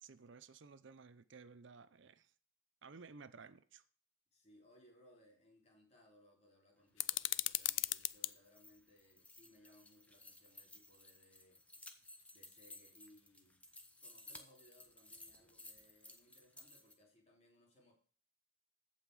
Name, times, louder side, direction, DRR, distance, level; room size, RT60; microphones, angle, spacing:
voice 1, 0.0-2.3 2.8-3.8, right 4 dB, 65° right, 0.6 m, -56 dB
voice 2, 4.3-11.6 12.3-13.6 14.0-17.9, equal, 30° left, 3.8 m, -67 dB
sound 1, 7.0-8.3, left 17 dB, 65° left, 0.4 m, -37 dB
sound 2, 7.1-16.9, left 2 dB, 5° left, 1.0 m, -58 dB
15.0 x 5.7 x 4.7 m
head